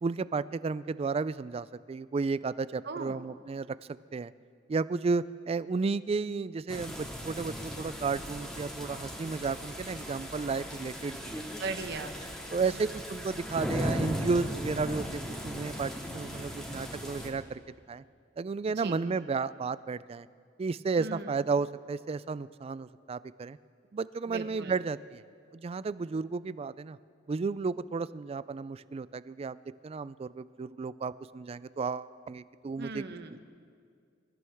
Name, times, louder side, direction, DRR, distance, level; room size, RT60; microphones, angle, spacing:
voice 1, 0.0-4.3 4.7-11.4 12.5-17.6 17.9-18.0 18.4-20.3 20.6-23.6 23.9-25.2 25.5-27.0 27.3-29.6 29.8-33.0, right 4 dB, 30° right, 17 dB, 0.3 m, -33 dB
voice 2, 2.8-3.2 11.6-12.3 12.7-12.9 18.8-19.0 21.0-21.4 24.3-24.7 32.8-33.4, right 3 dB, 60° right, 8 dB, 1.0 m, -39 dB
sound 1, 6.7-17.3, equal, 5° left, 2.0 m, -37 dB
26.5 x 14.0 x 3.5 m, 2.2 s
head